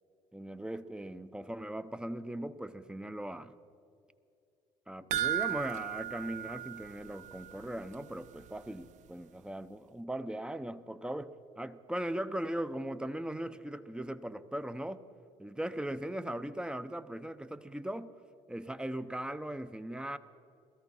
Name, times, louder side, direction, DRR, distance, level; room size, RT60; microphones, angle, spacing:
voice 1, 0.3-3.5 4.9-15.0 15.4-18.1 18.5-20.2, right 1 dB, 5° right, 12 dB, 0.7 m, -39 dB
sound 1, 5.1-7.6 7.9-8.0 8.5-8.6, right 12 dB, 55° right, 0.4 m, -35 dB
17.5 x 13.5 x 5.5 m, 2.6 s
supercardioid pair, 70°, 15 cm